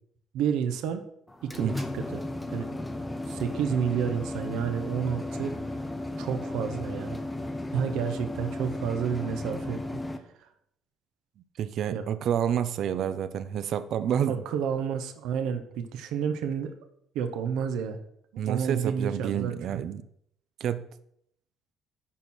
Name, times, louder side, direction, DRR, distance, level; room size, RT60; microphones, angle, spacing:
voice 1, 0.3-1.0 1.4-2.7 3.3-5.5 6.2-7.2 7.7-9.8 11.9-12.0 14.3-16.7 17.1-18.0 18.3-19.8, right 7 dB, 85° right, 1.0 m, -30 dB
sound 1, 1.3-10.2, left 1 dB, 10° left, 0.9 m, -35 dB
voice 2, 11.6-14.4 18.4-20.0 20.6-20.9, right 9 dB, 60° right, 0.6 m, -29 dB
11.0 x 4.5 x 6.3 m
cardioid pair, 140°, 0 cm